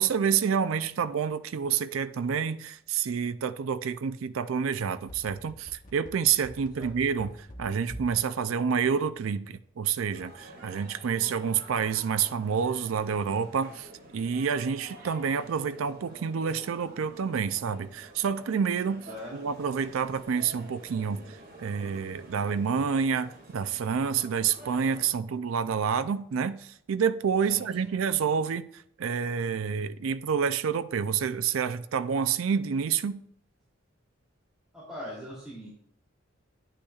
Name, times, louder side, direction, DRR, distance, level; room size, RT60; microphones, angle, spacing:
voice 1, 0.0-33.2, right 6 dB, 85° right, 0.4 m, -28 dB
sound 1, 4.8-8.2 8.5-8.6, equal, 40° left, 1.1 m, -44 dB
sound 2, 10.1-25.1, right 1 dB, 45° right, 2.2 m, -49 dB
voice 2, 19.1-19.5 27.5-28.0 34.7-35.7, left 1 dB, 5° right, 2.8 m, -41 dB
10.0 x 8.9 x 2.4 m
head